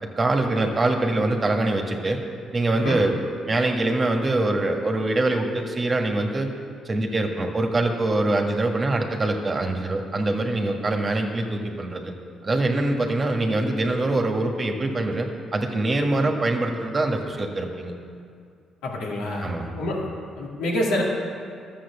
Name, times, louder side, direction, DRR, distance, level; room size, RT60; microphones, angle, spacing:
voice 1, 0.0-2.2 2.5-3.2 3.5-6.5 6.8-12.1 12.4-17.9 19.4-19.7, right 2 dB, 30° right, 3 dB, 1.5 m, -24 dB
voice 2, 18.8-19.5 19.7-20.1 20.4-21.0, left 1 dB, 85° left, -3 dB, 2.5 m, -26 dB
11.5 x 7.5 x 7.0 m, 2.3 s
supercardioid pair, 70°, 0 cm